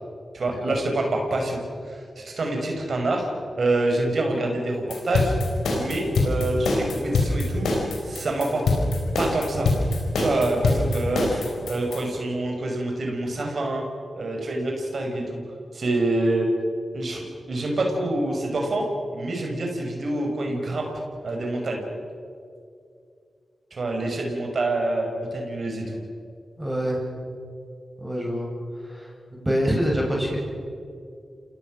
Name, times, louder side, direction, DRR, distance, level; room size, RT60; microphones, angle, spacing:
voice 1, 0.3-1.6 1.9-3.3 3.6-5.3 5.7-7.7 8.0-8.6 9.2-9.9 10.2-11.3 11.6-13.8 14.2-15.4 15.7-16.5 16.9-18.8 19.1-20.9 21.2-21.8 23.7-25.8, right 2 dB, 65° right, 2 dB, 5.8 m, -26 dB
sound 1, 4.9-12.0, left 3 dB, 90° left, 4.9 m, -23 dB
voice 2, 26.6-27.0 28.0-28.5 28.8-30.4, equal, 15° right, -2 dB, 7.6 m, -26 dB
29.5 x 18.0 x 6.5 m, 2.3 s
supercardioid pair, 40°, 0 cm